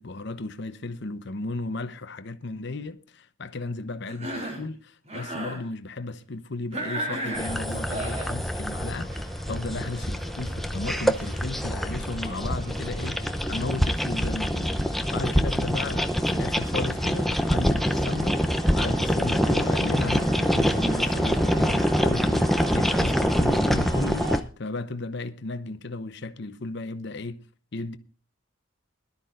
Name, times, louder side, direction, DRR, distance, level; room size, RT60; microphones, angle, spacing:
voice 1, 0.0-27.4 27.7-28.0, left 3 dB, 55° left, 0.9 m, -35 dB
Cough, 4.1-4.7 5.1-5.6 6.7-8.3, right 1 dB, 30° right, 3.8 m, -33 dB
sound 1, 7.4-24.4, equal, ahead, 0.7 m, -25 dB
sound 2, 7.7-24.4, right 1 dB, 50° right, 3.1 m, -41 dB
22.0 x 12.5 x 2.5 m
head